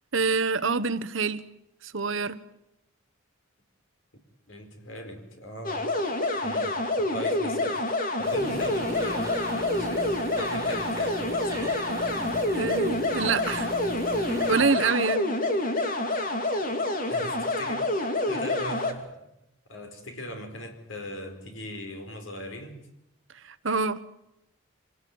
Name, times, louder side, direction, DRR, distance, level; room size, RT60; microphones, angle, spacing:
voice 1, 0.1-1.4 1.8-2.4 12.5-13.7 14.2-15.3 23.4-24.0, right 4 dB, 70° right, 1.1 m, -26 dB
voice 2, 4.5-5.9 6.4-11.8 16.4-16.5 17.1-17.8 18.3-19.3 19.7-22.8, left 1 dB, 65° left, 4.6 m, -40 dB
sound 1, 5.6-18.9, left 2 dB, 40° left, 2.6 m, -27 dB
sound 2, 8.2-14.6, right 1 dB, 15° right, 2.6 m, -37 dB
25.0 x 19.0 x 9.5 m
head